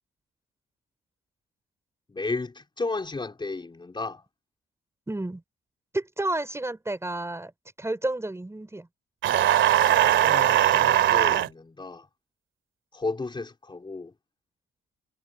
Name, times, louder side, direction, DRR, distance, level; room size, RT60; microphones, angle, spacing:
voice 1, 2.1-4.2 10.2-12.1 12.9-14.1, left 3 dB, 25° left, 4.1 m, -33 dB
voice 2, 5.1-5.4 5.9-7.5 7.8-8.9, right 2 dB, 15° right, 5.2 m, -30 dB
sound 1, 9.2-11.5, right 12 dB, 75° right, 2.3 m, -20 dB
cardioid pair, 90°, 20 cm